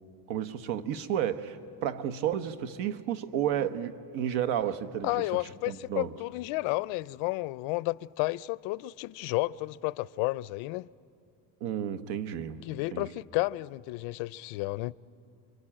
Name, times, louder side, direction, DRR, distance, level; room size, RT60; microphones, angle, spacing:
voice 1, 0.3-5.3 5.7-6.1 11.6-12.6 12.9-13.1, right 10 dB, 80° right, 1.3 m, -32 dB
voice 2, 5.0-10.9 12.7-14.9, left 20 dB, 85° left, 0.6 m, -32 dB
28.0 x 24.0 x 8.8 m
cardioid pair, 165°, 46 cm